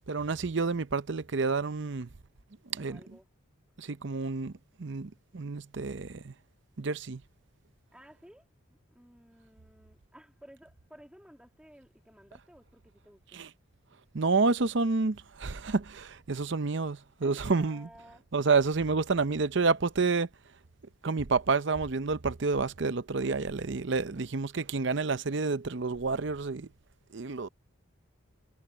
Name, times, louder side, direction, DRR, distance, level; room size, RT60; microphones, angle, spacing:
voice 1, 0.1-2.1 2.7-3.0 3.8-4.5 4.8-6.3 6.8-7.2 13.3-13.5 14.1-17.9 18.3-20.3 21.0-26.7 27.1-27.5, right 4 dB, 55° right, 0.7 m, -29 dB
voice 2, 2.8-3.3 7.9-13.4 17.2-18.2 23.2-23.4, equal, 5° right, 2.2 m, -55 dB
head